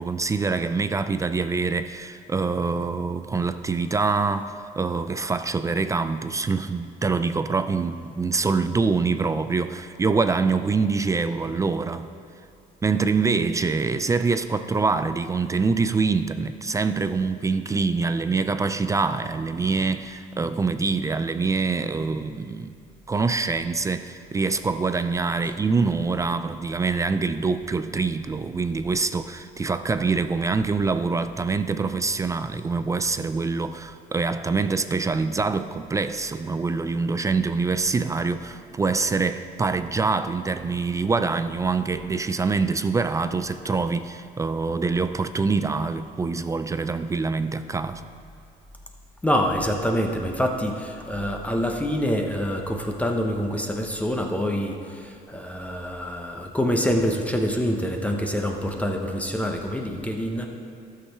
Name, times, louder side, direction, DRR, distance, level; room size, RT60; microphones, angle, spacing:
voice 1, 0.0-12.1 12.8-22.7 23.1-48.1, right 4 dB, 20° right, 0.3 m, -25 dB
voice 2, 49.2-60.5, equal, 10° left, 0.8 m, -26 dB
12.5 x 6.5 x 4.6 m
cardioid pair, 110°, 17 cm